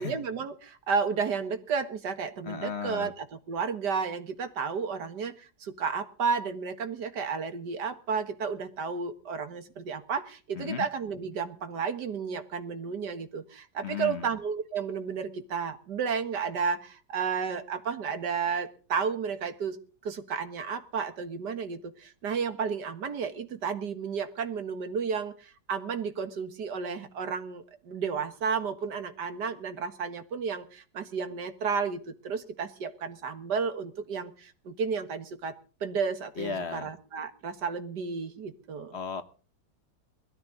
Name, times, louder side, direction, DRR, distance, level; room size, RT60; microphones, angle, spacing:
voice 1, 0.0-35.5 35.8-39.0, right 5 dB, 60° right, 2.1 m, -32 dB
voice 2, 2.4-3.1 10.5-10.9 13.8-14.3 36.4-36.9 38.9-39.2, left 6 dB, 40° left, 1.1 m, -35 dB
21.0 x 13.5 x 3.9 m
omnidirectional pair, 2.1 m